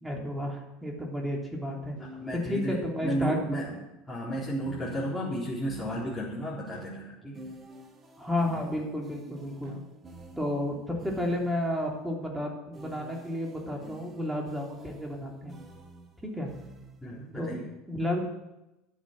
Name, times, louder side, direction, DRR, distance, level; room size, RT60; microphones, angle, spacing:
voice 1, 0.0-2.0 2.4-3.4 8.2-9.7 10.4-15.5 16.2-16.5 17.4-18.2, left 1 dB, 10° right, 0 dB, 3.3 m, -32 dB
sound 1, 0.9-1.1 2.0-3.8 4.6-6.6 7.3-11.9 12.7-17.2, right 2 dB, 30° right, 1.7 m, -49 dB
voice 2, 2.0-3.7 4.1-7.5 17.0-17.7, equal, 10° left, -8 dB, 4.2 m, -33 dB
sound 2, 4.3-4.9 6.7-7.5 8.5-9.1 9.6-10.4 11.8-12.1 13.7-14.3, equal, 50° right, 5.1 m, -51 dB
12.0 x 7.3 x 7.6 m, 0.95 s
figure-of-eight pair, 70°, 0 cm